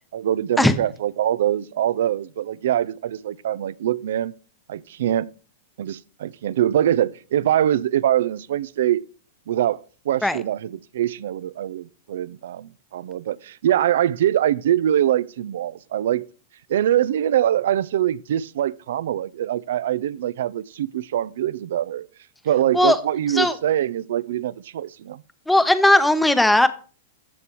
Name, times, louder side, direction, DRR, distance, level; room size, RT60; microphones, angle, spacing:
voice 1, 0.1-4.3 4.7-5.3 5.8-9.1 9.5-16.3 16.7-22.1 22.4-25.2, right 11 dB, 75° right, 0.3 m, -23 dB
voice 2, 25.5-26.7, left 1 dB, 5° left, 0.7 m, -17 dB
14.0 x 6.9 x 3.0 m
hypercardioid pair, 125°, 0 cm